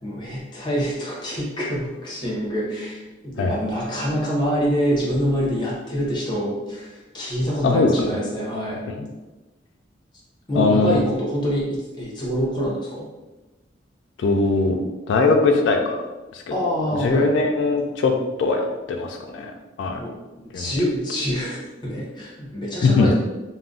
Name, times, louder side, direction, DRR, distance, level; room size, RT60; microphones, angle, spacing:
voice 1, 0.0-8.8 10.5-13.1 16.5-17.5 20.0-20.1 20.4-23.1, equal, 25° left, -5 dB, 0.7 m, -26 dB
voice 2, 7.6-8.1 9.0-9.1 10.5-11.0 14.2-14.8 15.1-16.0 16.3-16.5 17.0-18.1 18.4-19.5 19.8-20.0 20.5-20.7 22.8-23.1, left 3 dB, 80° left, 3 dB, 0.3 m, -20 dB
2.4 x 2.0 x 3.6 m, 1.1 s
head